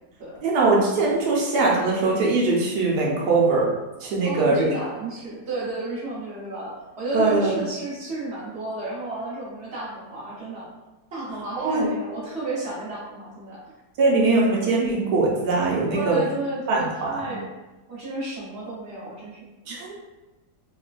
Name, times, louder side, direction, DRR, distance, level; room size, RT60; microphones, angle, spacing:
voice 1, 0.4-3.7 4.0-4.6 7.1-7.5 11.6-11.9 14.0-16.2 16.7-17.4 19.7-19.9, right 3 dB, 90° right, -3 dB, 1.2 m, -21 dB
voice 2, 4.2-10.7 11.1-13.6 15.9-17.4 17.9-19.4 19.7-19.8, right 2 dB, 50° right, -7 dB, 1.0 m, -32 dB
3.1 x 2.1 x 2.4 m, 1.1 s
omnidirectional pair, 1.7 m